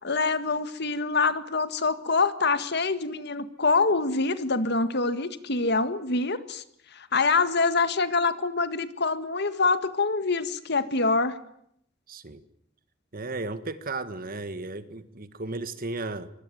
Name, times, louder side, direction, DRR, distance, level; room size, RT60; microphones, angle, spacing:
voice 1, 0.0-6.6 6.9-11.4, left 3 dB, 60° left, 1.9 m, -25 dB
voice 2, 12.1-12.4 13.1-16.3, right 2 dB, 50° right, 1.8 m, -34 dB
24.0 x 24.0 x 9.3 m
head